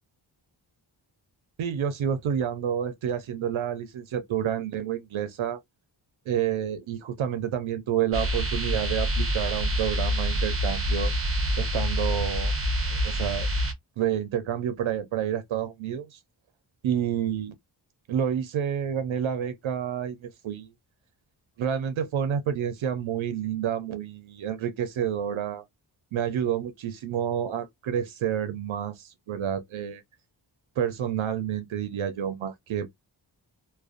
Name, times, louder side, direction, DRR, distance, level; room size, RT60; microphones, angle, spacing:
voice 1, 1.6-5.6 6.3-11.1 11.6-12.5 12.9-13.5 14.0-16.2 16.8-17.5 18.1-20.7 21.6-25.6 26.1-30.0 30.8-32.9, right 9 dB, 85° right, 0.6 m, -29 dB
sound 1, 8.1-13.7, equal, 30° right, 0.7 m, -26 dB
2.4 x 2.2 x 2.4 m
wide cardioid pair, 165°, 46 cm